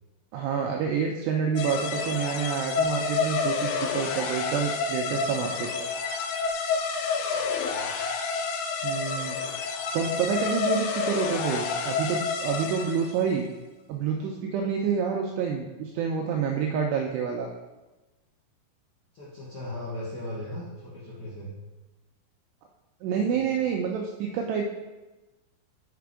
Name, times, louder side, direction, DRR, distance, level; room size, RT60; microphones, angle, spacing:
voice 1, 0.3-5.9 8.8-9.4 9.9-13.5 13.9-17.5 23.0-24.7, right 6 dB, 90° right, 1 dB, 2.4 m, -28 dB
sound 1, 1.6-13.2, left 5 dB, 85° left, 3.1 m, -29 dB
voice 2, 7.3-7.9 19.1-21.5 23.1-23.5, left 1 dB, 70° left, -8 dB, 1.7 m, -38 dB
6.7 x 5.1 x 4.7 m, 1.1 s
omnidirectional pair, 5.4 m